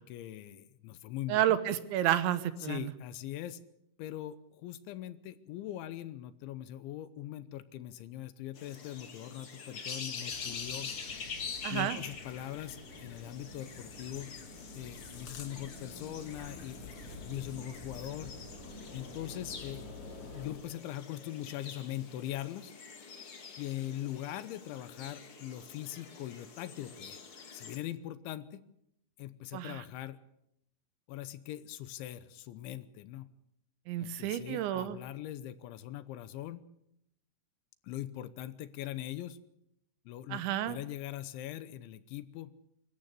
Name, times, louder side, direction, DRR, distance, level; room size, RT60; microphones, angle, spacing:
voice 1, 0.0-1.6 2.6-3.6 4.0-10.9 11.7-14.3 14.7-18.3 18.9-19.8 20.3-22.7 23.0-23.1 23.6-27.2 27.5-28.6 29.2-30.2 31.1-33.3 34.0-36.6 37.8-39.4 40.1-42.5, left 13 dB, 80° left, 14 dB, 3.2 m, -41 dB
voice 2, 1.3-2.9 11.6-12.0 29.5-29.8 33.9-35.0 40.3-40.8, right 12 dB, 75° right, 13 dB, 3.2 m, -30 dB
sound 1, 8.5-27.8, left 5 dB, 45° left, 2.0 m, -46 dB
sound 2, 10.3-20.5, left 2 dB, 20° left, 6.3 m, -49 dB
26.0 x 14.0 x 8.3 m, 0.76 s
omnidirectional pair, 5.6 m